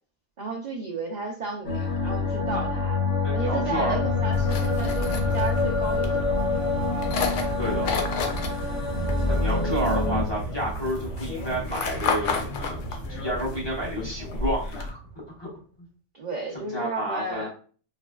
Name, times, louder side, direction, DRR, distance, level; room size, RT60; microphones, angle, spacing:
voice 1, 0.4-3.0 3.3-6.5 8.6-8.8 16.1-17.5, right 3 dB, 55° right, -1 dB, 0.5 m, -33 dB
sound 1, 1.6-10.2, left 3 dB, 60° left, 1.0 m, -26 dB
voice 2, 3.2-4.0 4.8-5.0 7.6-7.9 9.3-15.0 15.4-15.5 16.5-17.5, equal, 25° left, -5 dB, 0.8 m, -30 dB
sound 2, 3.9-15.6, right 2 dB, 70° right, 0.9 m, -36 dB
sound 3, 4.3-14.9, left 4 dB, 85° left, 0.9 m, -32 dB
3.0 x 2.5 x 2.2 m, 0.41 s
omnidirectional pair, 1.2 m